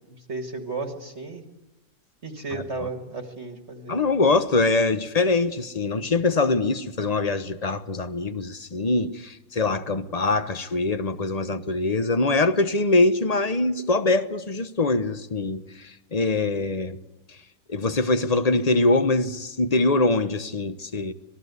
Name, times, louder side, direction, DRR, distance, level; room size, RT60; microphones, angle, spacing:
voice 1, 0.1-1.4 2.2-4.0, right 3 dB, 45° right, 2.2 m, -34 dB
voice 2, 2.5-2.9 3.9-17.0 17.7-21.1, left 3 dB, 30° left, 1.0 m, -23 dB
26.0 x 19.5 x 8.2 m
omnidirectional pair, 1.6 m